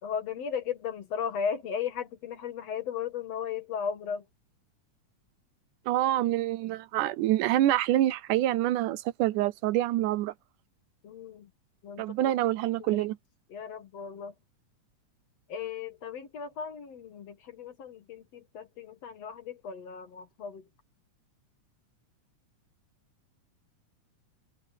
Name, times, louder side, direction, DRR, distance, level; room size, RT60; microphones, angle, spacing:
voice 1, 0.0-4.3 11.0-11.5 11.8-12.1 12.8-13.1 13.5-14.3 15.5-20.7, left 7 dB, 55° left, 2.6 m, -36 dB
voice 2, 5.9-10.3 12.0-13.2, right 14 dB, 80° right, 2.2 m, -26 dB
omnidirectional pair, 3.7 m